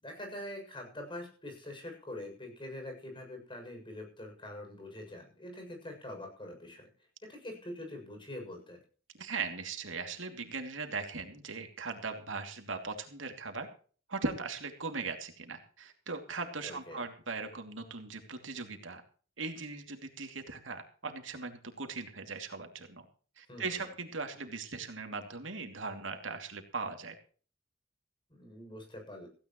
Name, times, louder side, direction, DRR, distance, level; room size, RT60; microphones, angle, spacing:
voice 1, 0.0-6.9 7.2-8.8 16.6-17.0 23.5-23.8 28.3-29.3, left 1 dB, 25° left, 3 dB, 7.1 m, -44 dB
voice 2, 9.2-13.7 14.1-19.0 19.4-23.0 23.4-27.2, right 4 dB, 75° right, 5 dB, 2.7 m, -39 dB
17.0 x 16.0 x 3.1 m, 0.41 s
head